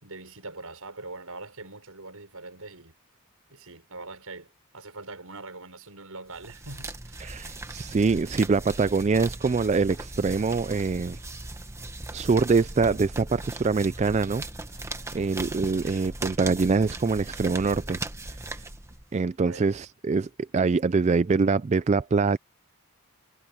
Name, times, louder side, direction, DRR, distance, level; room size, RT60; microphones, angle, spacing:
voice 1, 0.0-2.9 3.5-4.5 4.7-7.4 19.5-19.6, right 3 dB, 75° right, 5.9 m, -42 dB
sound 1, 6.3-19.2, right 2 dB, 10° right, 1.2 m, -38 dB
voice 2, 7.2-11.2 12.1-14.4 15.1-18.0 18.5-18.6 19.1-22.4, right 4 dB, 30° right, 0.3 m, -24 dB
head